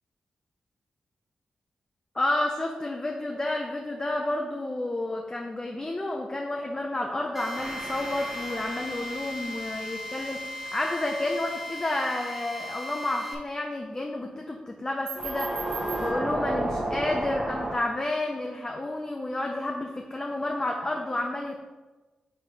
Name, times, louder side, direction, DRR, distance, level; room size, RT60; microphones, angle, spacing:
voice 1, 2.1-21.6, left 2 dB, 30° left, 1 dB, 0.7 m, -30 dB
Drill, 7.3-13.3, left 1 dB, 10° right, 1.5 m, -37 dB
sound 1, 7.5-11.1 15.1-17.8, right 1 dB, 40° right, 1.2 m, -33 dB
5.0 x 4.1 x 4.8 m, 1.2 s
cardioid pair, 55°, 3 cm